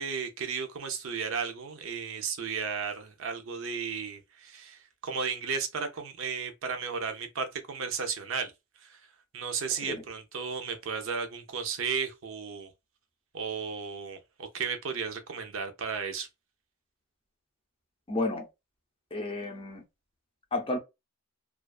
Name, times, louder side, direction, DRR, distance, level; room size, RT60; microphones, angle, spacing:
voice 1, 0.0-8.5 8.8-9.0 9.3-12.7 13.3-16.3, right 6 dB, 65° right, 0.5 m, -34 dB
voice 2, 18.1-18.5 19.1-19.8 20.5-20.8, left 2 dB, 25° left, 0.5 m, -31 dB
2.4 x 2.3 x 2.3 m
head